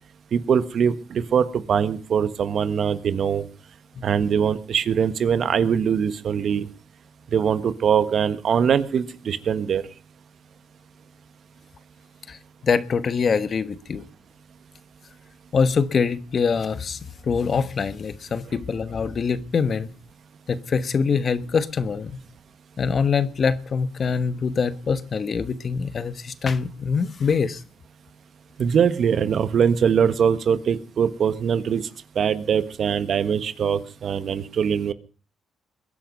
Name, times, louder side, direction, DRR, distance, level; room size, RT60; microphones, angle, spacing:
voice 1, 0.3-3.4 4.0-6.7 7.3-9.8 28.6-31.8 32.1-34.9, right 7 dB, 60° right, 1.4 m, -22 dB
voice 2, 12.6-14.0 15.5-19.9 20.5-22.2 22.8-27.6, left 5 dB, 45° left, 1.2 m, -24 dB
22.0 x 10.5 x 5.3 m
cardioid pair, 90°, 0 cm